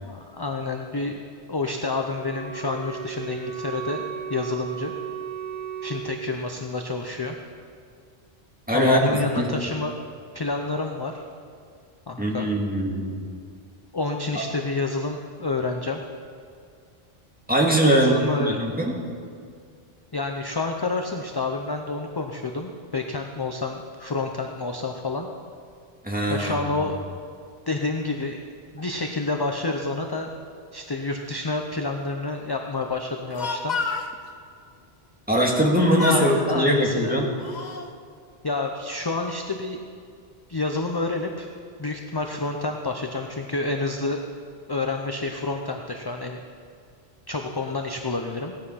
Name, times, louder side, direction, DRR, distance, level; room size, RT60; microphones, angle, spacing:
voice 1, 0.0-1.2 1.5-4.0 4.3-4.9 5.8-7.4 8.7-10.0 10.3-11.2 12.1-12.5 13.9-16.0 17.9-18.7 20.1-25.3 26.3-27.0 27.7-28.4 28.7-30.3 30.7-33.8 36.1-37.1 38.4-39.8 40.5-41.5 41.8-44.2 44.7-46.4 47.3-48.5, left 3 dB, 25° left, 3 dB, 0.6 m, -28 dB
Wind instrument woodwind instrument, 2.1-6.4, right 8 dB, 70° right, 4.5 m, -35 dB
voice 2, 8.7-9.5 12.2-13.3 17.5-18.1 18.4-18.9 26.0-26.8 35.3-37.3, right 1 dB, 10° right, -2 dB, 2.0 m, -21 dB
Speech, 33.1-34.1 35.5-35.7 36.0-36.4 37.1-37.9, left 4 dB, 45° left, 0.9 m, -30 dB
17.0 x 10.5 x 5.7 m, 2.2 s
omnidirectional pair, 1.1 m